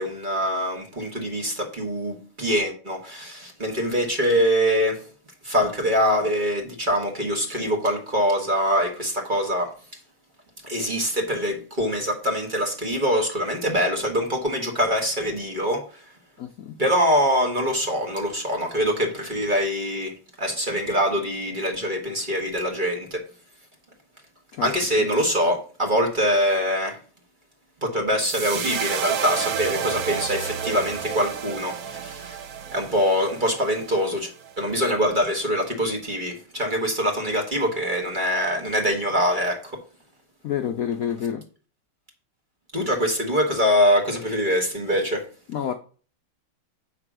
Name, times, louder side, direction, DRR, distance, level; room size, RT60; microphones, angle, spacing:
voice 1, 0.0-5.1 5.4-9.7 10.6-15.8 16.8-23.2 24.6-27.0 27.8-32.4 32.7-34.3 34.6-39.8 42.7-45.3, equal, 25° right, 1.6 m, -24 dB
voice 2, 16.4-16.8 24.5-24.7 40.4-41.4 45.5-45.7, left 9 dB, 75° left, 0.8 m, -28 dB
sound 1, 28.2-34.5, right 8 dB, 70° right, 0.9 m, -31 dB
8.7 x 3.3 x 6.2 m
omnidirectional pair, 2.3 m